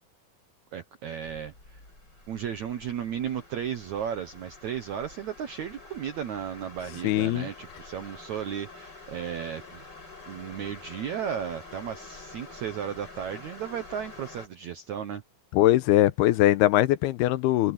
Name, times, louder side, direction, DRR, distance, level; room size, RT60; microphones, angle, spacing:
voice 1, 0.7-1.8 2.3-9.8 10.3-15.2, right 8 dB, 75° right, 1.7 m, -34 dB
sound 1, 1.2-14.5, left 3 dB, 25° left, 7.8 m, -47 dB
voice 2, 7.0-7.5 15.5-17.7, left 15 dB, 80° left, 2.6 m, -21 dB
open air
omnidirectional pair, 4.8 m